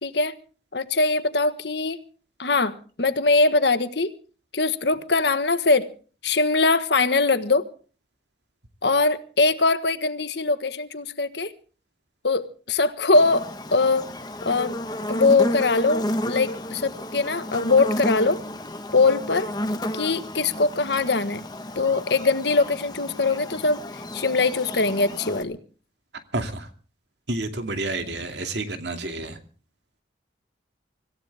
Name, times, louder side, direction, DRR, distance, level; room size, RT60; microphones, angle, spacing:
voice 1, 0.0-0.3 0.7-2.0 2.4-4.1 4.5-5.9 6.2-7.6 8.8-11.5 12.2-14.1 14.4-14.8 15.1-18.4 18.9-19.5 19.9-21.4 21.7-23.8 24.1-25.6, left 3 dB, 65° left, 1.4 m, -22 dB
Buzz, 13.1-25.4, left 1 dB, 20° left, 1.3 m, -32 dB
voice 2, 26.3-26.7 27.3-29.4, right 2 dB, 70° right, 2.5 m, -29 dB
25.5 x 16.0 x 3.5 m
head